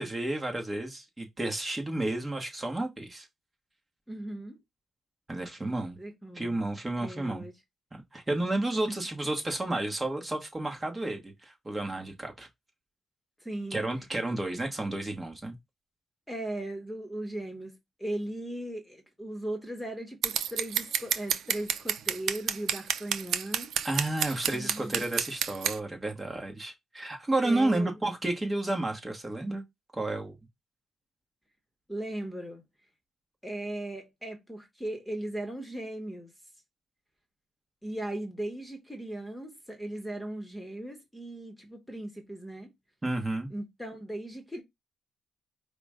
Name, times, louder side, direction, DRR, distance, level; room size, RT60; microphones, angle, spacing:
voice 1, 0.0-3.3 5.3-6.0 6.3-7.5 7.9-12.5 13.7-15.5 23.8-29.6 29.9-30.4 43.0-43.5, right 2 dB, 20° right, 1.1 m, -31 dB
voice 2, 4.1-4.6 6.0-6.6 7.0-7.5 8.9-9.0 13.4-13.8 16.3-23.7 24.4-25.1 27.4-27.9 31.9-32.6 33.4-36.3 37.8-42.7 43.5-44.6, right 1 dB, 5° left, 1.1 m, -38 dB
Scissors, 20.2-25.8, right 8 dB, 75° right, 0.5 m, -29 dB
4.9 x 2.1 x 4.8 m
cardioid pair, 105°, 0 cm